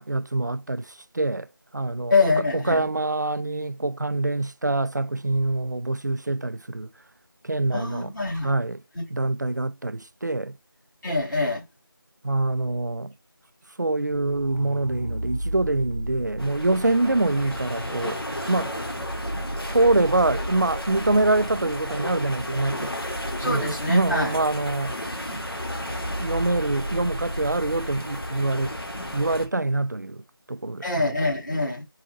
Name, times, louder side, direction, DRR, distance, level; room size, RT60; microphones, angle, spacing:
voice 1, 0.0-1.5 1.7-6.9 7.4-8.1 8.4-8.8 9.1-10.6 12.2-13.1 13.8-18.2 18.5-18.7 19.3-19.4 19.7-22.9 23.4-25.0 25.3-25.4 25.9-28.8 29.1-31.0, right 2 dB, 50° right, 0.3 m, -25 dB
voice 2, 2.1-2.9 7.7-8.5 8.9-9.0 11.0-11.6 23.4-24.3 30.8-31.8, left 3 dB, 55° left, 3.3 m, -24 dB
sound 1, 14.1-29.5, right 1 dB, 5° left, 1.0 m, -36 dB
sound 2, 16.4-29.5, left 1 dB, 90° left, 1.8 m, -34 dB
4.8 x 3.7 x 2.3 m
figure-of-eight pair, 175°, 12 cm